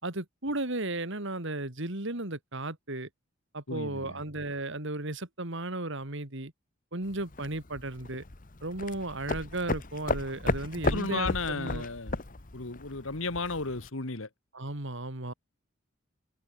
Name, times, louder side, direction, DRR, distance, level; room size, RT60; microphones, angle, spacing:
voice 1, 0.0-3.1 3.5-6.5 6.9-8.2 8.6-11.9 14.5-15.3, right 2 dB, 60° right, 2.9 m, -35 dB
voice 2, 3.7-4.2 10.9-12.2 12.5-14.3, left 3 dB, 70° left, 1.9 m, -34 dB
sound 1, 7.0-13.9, left 2 dB, 40° left, 1.4 m, -35 dB
open air
head